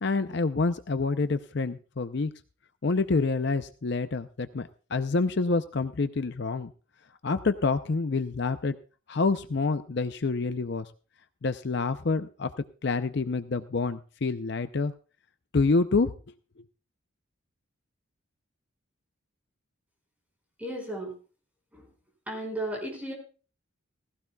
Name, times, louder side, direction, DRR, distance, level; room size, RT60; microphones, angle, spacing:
voice 1, 0.0-2.3 2.8-6.7 7.2-8.8 9.1-10.9 11.4-12.5 12.8-14.9 15.5-16.1, left 3 dB, 55° left, 11 dB, 0.5 m, -27 dB
voice 2, 20.6-21.1 21.7-21.8 22.3-23.1, right 1 dB, 5° right, 0 dB, 5.2 m, -34 dB
18.0 x 16.0 x 2.3 m, 0.36 s
head